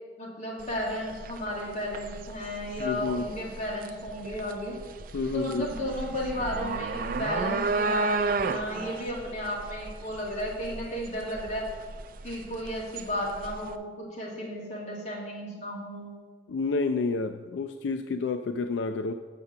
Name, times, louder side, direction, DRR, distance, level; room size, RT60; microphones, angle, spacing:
voice 1, 0.2-4.7 5.3-11.7 12.2-16.1, equal, 40° left, -4 dB, 2.3 m, -34 dB
sound 1, 0.6-13.7, right 3 dB, 55° right, 0.4 m, -33 dB
voice 2, 2.8-3.3 5.1-5.7 16.5-19.1, left 4 dB, 80° left, 8 dB, 0.4 m, -29 dB
6.6 x 5.9 x 6.7 m, 1.4 s
head